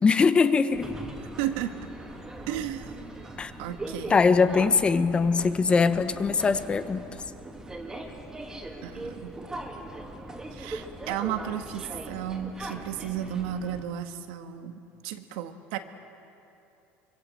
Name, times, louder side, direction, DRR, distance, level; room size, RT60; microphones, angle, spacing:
voice 1, 0.0-1.0 3.4-3.5 4.1-7.1, left 5 dB, 20° left, 11 dB, 1.0 m, -22 dB
sound 1, 0.7-13.8, right 1 dB, 10° right, 2.7 m, -40 dB
voice 2, 1.4-1.7 2.5-3.0 3.6-4.2 8.8-9.3 10.5-15.8, right 10 dB, 80° right, 7 dB, 1.7 m, -33 dB
25.0 x 25.0 x 7.8 m, 2.8 s
cardioid pair, 135°, 5 cm